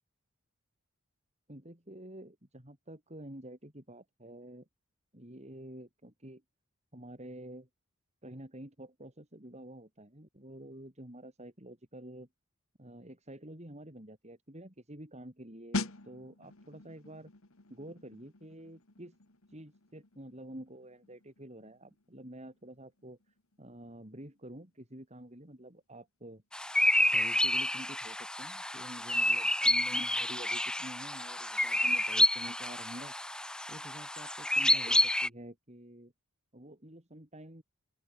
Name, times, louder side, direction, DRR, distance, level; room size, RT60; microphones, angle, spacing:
voice 1, 1.5-4.7 5.1-6.4 6.9-7.7 8.2-12.3 12.8-17.3 17.7-19.2 19.5-26.4 27.1-33.1 33.7-36.1 36.5-37.6, right 1 dB, 30° right, 4.4 m, -48 dB
sound 1, 15.7-26.2 26.5-26.8, left 2 dB, 70° left, 2.1 m, -45 dB
sound 2, 26.5-35.3, left 1 dB, 5° left, 0.9 m, -29 dB
open air
head